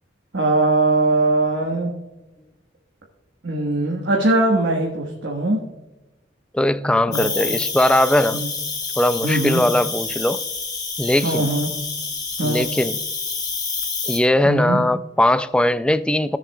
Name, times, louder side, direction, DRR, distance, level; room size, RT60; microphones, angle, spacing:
voice 1, 0.3-1.9 3.4-5.6 7.1-7.6 8.3-8.5 9.2-9.6 11.2-11.7 12.4-12.6 14.4-14.8, right 2 dB, 75° right, 1.4 m, -21 dB
voice 2, 6.5-8.4 9.0-10.4 11.0-11.5 12.4-13.0 14.1-16.4, left 1 dB, 5° left, 0.3 m, -19 dB
Cricket, 7.1-14.2, left 4 dB, 20° left, 1.7 m, -28 dB
16.5 x 7.1 x 2.3 m
head